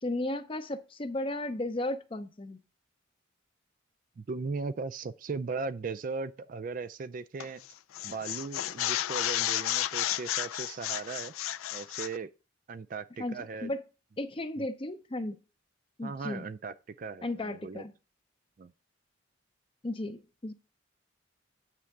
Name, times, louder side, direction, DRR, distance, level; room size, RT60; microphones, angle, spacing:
voice 1, 0.0-2.6 13.2-13.8 14.2-15.4 16.0-16.5 17.2-17.9 19.8-20.5, left 1 dB, 25° left, 0.5 m, -35 dB
voice 2, 4.2-7.6 8.0-11.3 11.7-12.3 12.7-13.7 14.6-14.7 16.0-17.8 18.6-18.7, right 4 dB, 40° right, 0.3 m, -38 dB
sound 1, 7.4-7.7 7.9-12.2, left 13 dB, 90° left, 0.4 m, -32 dB
8.3 x 3.4 x 6.4 m
head